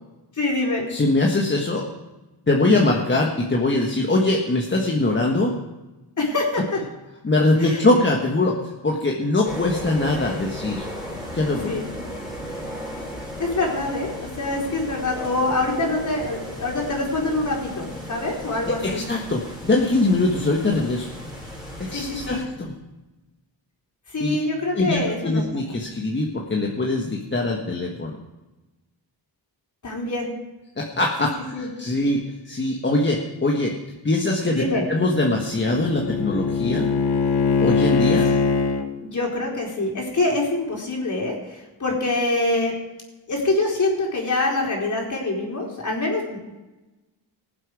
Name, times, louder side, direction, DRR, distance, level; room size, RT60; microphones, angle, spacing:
voice 1, 0.4-0.9 6.2-6.8 7.6-7.8 11.6-11.8 13.4-19.0 21.9-22.4 24.1-25.4 29.8-30.3 31.5-31.7 34.5-34.8 38.2-38.3 39.0-42.7 43.3-46.5, left 2 dB, 40° left, -1 dB, 4.2 m, -25 dB
voice 2, 0.9-1.9 2.5-5.5 7.2-8.6 8.8-10.9 11.3-11.7 18.6-21.1 21.8-22.7 24.2-24.4 24.7-28.1 30.8-33.7 34.0-34.6 34.9-36.9 37.6-38.3, left 2 dB, 25° left, -1 dB, 1.5 m, -22 dB
sound 1, 9.4-22.4, equal, ahead, 5.7 m, -36 dB
Bowed string instrument, 34.8-38.9, left 4 dB, 60° left, 1.2 m, -22 dB
18.5 x 7.7 x 4.8 m, 1.1 s
cardioid pair, 85°, 45 cm